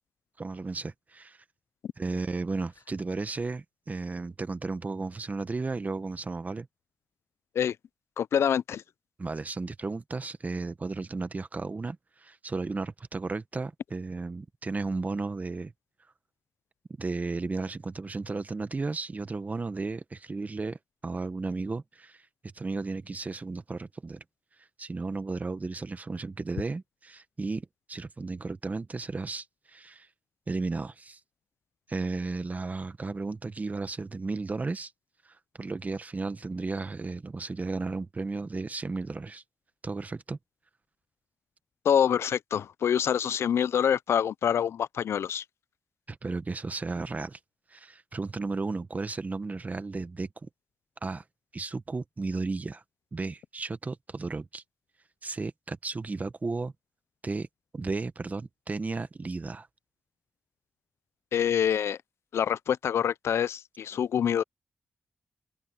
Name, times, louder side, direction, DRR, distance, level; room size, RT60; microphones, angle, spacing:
voice 1, 0.4-1.4 2.0-6.7 9.2-15.7 17.0-22.2 22.5-24.2 24.8-30.1 30.5-31.2 31.9-34.9 35.3-39.4 39.8-40.4 46.1-47.4 47.7-50.5 51.0-51.2 51.5-52.8 53.1-54.6 55.2-56.7 57.2-57.5 57.7-59.7, right 3 dB, 35° right, 1.3 m, -34 dB
voice 2, 8.2-8.8 41.8-45.4 61.3-62.0 62.3-64.4, left 8 dB, 85° left, 0.4 m, -26 dB
open air
cardioid pair, 70°, 4 cm